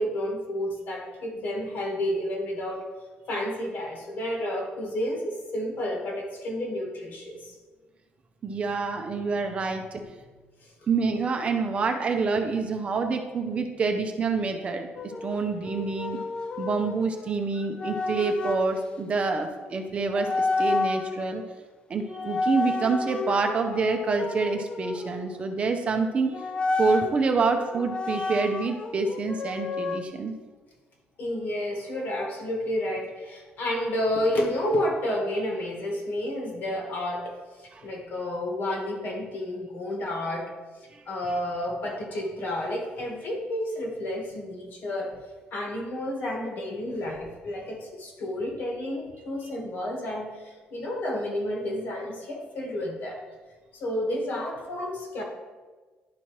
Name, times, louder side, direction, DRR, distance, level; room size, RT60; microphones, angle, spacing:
voice 1, 0.0-2.9 3.3-7.5 10.6-10.7 31.2-40.5 41.1-45.2 45.5-53.2 53.7-55.2, left 1 dB, 55° left, 0 dB, 1.6 m, -31 dB
voice 2, 8.4-10.0 10.9-14.9 15.2-16.2 16.6-21.4 21.9-26.5 26.8-30.4 37.8-37.9 40.9-41.0, right 4 dB, 30° right, 4 dB, 0.6 m, -27 dB
sound 1, 15.0-18.7 19.7-19.9 20.1-21.5 22.1-25.5 26.3-27.1 27.7-30.0, left 3 dB, 25° left, 0.4 m, -31 dB
11.0 x 4.3 x 3.1 m, 1.3 s
cardioid pair, 155°, 4 cm